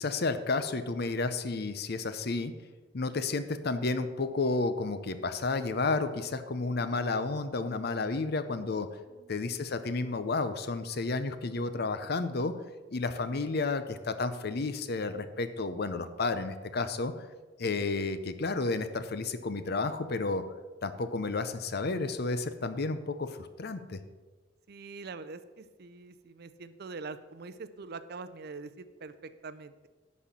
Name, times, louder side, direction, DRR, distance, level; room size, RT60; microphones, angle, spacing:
voice 1, 0.0-2.5 2.9-8.9 9.3-12.5 12.9-17.2 17.6-20.4 20.8-24.0, left 3 dB, 55° left, 11 dB, 0.7 m, -31 dB
voice 2, 8.9-9.3 24.7-29.9, right 4 dB, 55° right, 12 dB, 0.5 m, -44 dB
11.0 x 4.3 x 7.3 m, 1.3 s
head